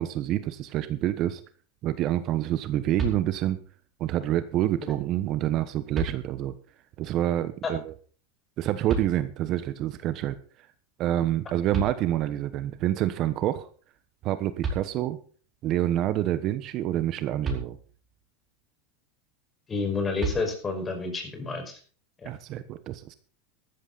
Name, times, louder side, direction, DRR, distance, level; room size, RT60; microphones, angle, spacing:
voice 1, 0.0-1.4 1.8-3.6 4.0-6.5 7.0-7.9 8.6-10.7 11.0-13.7 14.2-15.2 15.6-17.8 22.2-23.1, right 13 dB, 45° right, 12 dB, 1.1 m, -27 dB
sound 1, 3.0-3.7 5.2-5.3 5.9-6.7 8.9-9.6 11.4-11.5 11.7-12.6 14.3-14.4 14.6-15.4 17.4-18.2 20.2-21.0, right 3 dB, 20° right, 5.0 m, -34 dB
voice 2, 19.7-21.8 22.2-22.3, left 4 dB, 20° left, 4 dB, 5.5 m, -30 dB
14.0 x 13.5 x 4.1 m, 0.41 s
supercardioid pair, 130°, 0 cm